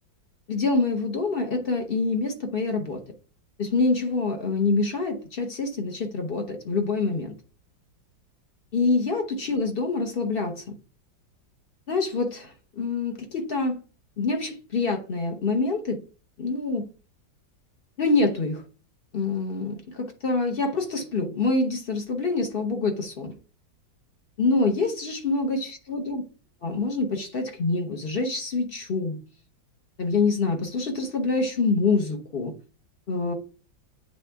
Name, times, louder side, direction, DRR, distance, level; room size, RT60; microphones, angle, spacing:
voice 1, 0.5-3.0 3.6-7.3 8.7-10.7 11.9-13.8 14.2-16.0 16.4-16.9 18.0-18.6 19.1-23.3 24.4-25.6 25.9-26.2 26.6-29.2 30.0-32.5 33.1-33.3, left 3 dB, 45° left, 0.8 m, -26 dB
9.2 x 3.4 x 3.5 m
omnidirectional pair, 2.1 m